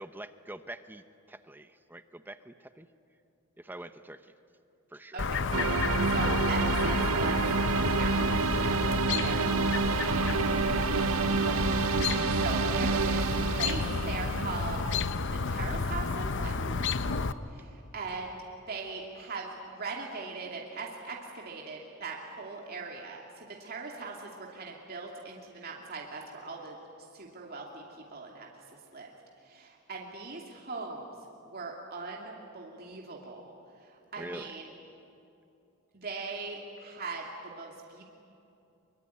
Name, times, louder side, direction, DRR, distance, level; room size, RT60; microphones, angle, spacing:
voice 1, 0.0-2.9 3.6-4.3 4.9-5.3 12.1-12.3 34.2-34.5, right 1 dB, 10° right, 10 dB, 0.7 m, -45 dB
voice 2, 5.1-5.5 6.1-7.4 7.7-8.8 9.2-11.6 12.4-13.2 13.5-14.8 15.3-17.3 17.5-18.4 18.7-23.2 23.6-26.8 27.1-27.8 28.1-28.5 28.9-29.1 29.4-31.1 31.5-33.5 34.1-34.7 35.9-38.0, right 3 dB, 45° right, -1 dB, 2.6 m, -40 dB
Chirp tweet, 5.2-17.3, left 4 dB, 60° left, 0.7 m, -31 dB
sound 1, 5.5-15.5, right 5 dB, 80° right, 0.5 m, -29 dB
25.0 x 23.5 x 9.4 m, 2.8 s
head